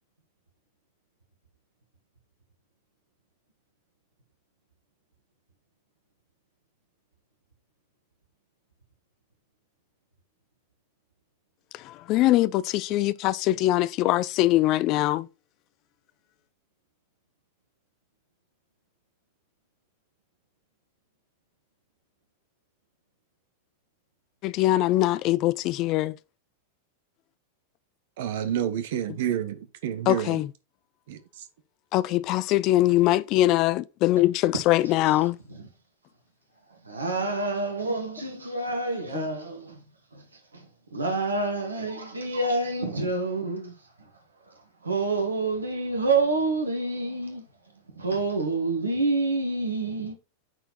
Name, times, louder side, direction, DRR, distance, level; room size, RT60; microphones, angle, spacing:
voice 1, 11.7-15.3 24.4-26.2 30.1-30.5 31.9-35.4 39.1-39.3, left 15 dB, 40° left, 0.4 m, -22 dB
voice 2, 28.2-30.4 31.1-31.4, right 10 dB, 55° right, 1.1 m, -29 dB
voice 3, 36.7-39.8 40.1-43.7 44.5-47.4 47.9-50.1, right 3 dB, 75° right, 1.7 m, -28 dB
8.8 x 4.6 x 4.1 m
figure-of-eight pair, 90°, 0 cm